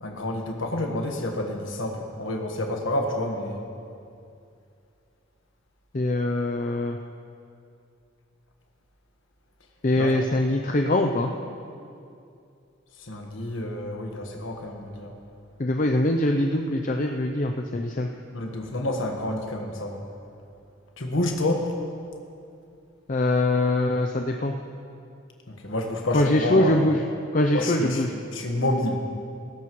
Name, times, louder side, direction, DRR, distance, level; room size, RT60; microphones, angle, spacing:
voice 1, 0.0-3.6 10.0-10.1 13.0-15.2 18.3-20.0 21.0-21.7 25.5-26.8 27.5-29.0, left 1 dB, 75° left, 2 dB, 1.4 m, -29 dB
voice 2, 5.9-7.0 9.8-11.3 15.6-18.1 23.1-24.5 26.1-27.0 27.3-28.1, left 1 dB, 40° left, 3 dB, 0.5 m, -23 dB
18.5 x 15.5 x 3.1 m, 2.5 s
head